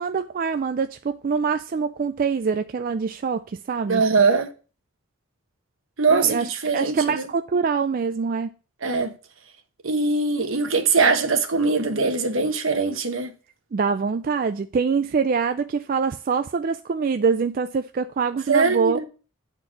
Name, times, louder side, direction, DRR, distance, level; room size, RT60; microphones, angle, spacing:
voice 1, 0.0-4.0 6.1-8.5 13.7-19.0, right 5 dB, 45° right, 0.3 m, -24 dB
voice 2, 3.9-4.5 6.0-7.2 8.8-9.1 9.8-13.3 18.5-19.0, right 4 dB, 75° right, 1.1 m, -21 dB
8.7 x 4.4 x 5.7 m
head